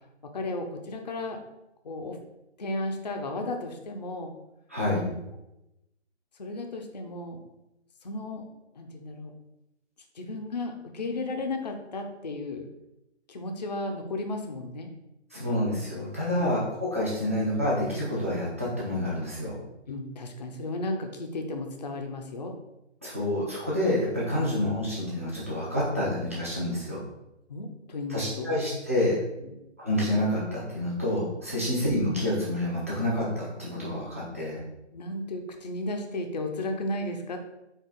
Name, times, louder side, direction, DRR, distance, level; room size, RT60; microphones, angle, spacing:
voice 1, 0.2-1.4 1.8-2.2 2.6-4.3 5.0-5.2 6.4-7.4 8.0-8.5 8.8-9.3 10.2-12.7 13.3-14.9 16.4-16.5 19.9-22.6 24.3-24.5 27.5-28.5 29.4-29.5 31.6-31.7 34.9-37.4, left 2 dB, 35° left, 4 dB, 0.5 m, -34 dB
voice 2, 4.7-5.0 15.3-19.6 23.0-27.0 28.1-29.2 29.8-34.6, left 1 dB, 15° right, -8 dB, 0.5 m, -28 dB
4.4 x 2.8 x 3.7 m, 0.92 s
hypercardioid pair, 160°, 36 cm